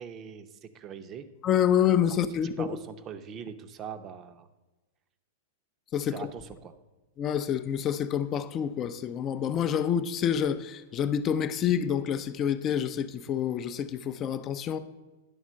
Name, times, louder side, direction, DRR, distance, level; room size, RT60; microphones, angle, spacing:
voice 1, 0.0-1.3 2.1-2.2 2.4-4.5 6.1-6.7, right 7 dB, 30° right, 0.6 m, -42 dB
voice 2, 1.4-2.7 5.9-6.3 7.2-14.8, left 9 dB, 30° left, 0.4 m, -27 dB
11.0 x 3.6 x 6.3 m
supercardioid pair, 145°, 0 cm